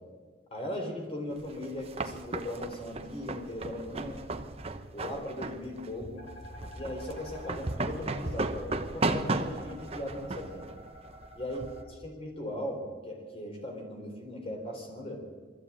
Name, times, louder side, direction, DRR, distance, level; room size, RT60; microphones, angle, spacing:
voice 1, 0.5-4.3 4.9-6.2 6.7-10.6 11.4-11.6 12.0-15.2, left 1 dB, 30° left, 2 dB, 4.1 m, -38 dB
sound 1, 1.4-11.8, right 2 dB, 35° right, 1.0 m, -35 dB
sound 2, 6.2-11.8, equal, 70° left, 6.8 m, -48 dB
22.0 x 14.0 x 8.7 m, 1.5 s
head